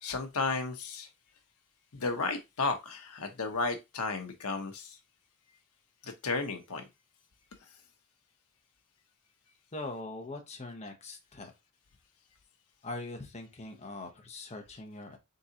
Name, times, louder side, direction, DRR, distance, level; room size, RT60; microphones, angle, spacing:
voice 1, 0.0-1.1 1.9-5.0 6.0-6.9, left 3 dB, 80° left, 0.9 m, -33 dB
voice 2, 9.7-11.5 12.8-15.2, left 2 dB, 30° left, 0.9 m, -42 dB
3.8 x 3.8 x 2.8 m
head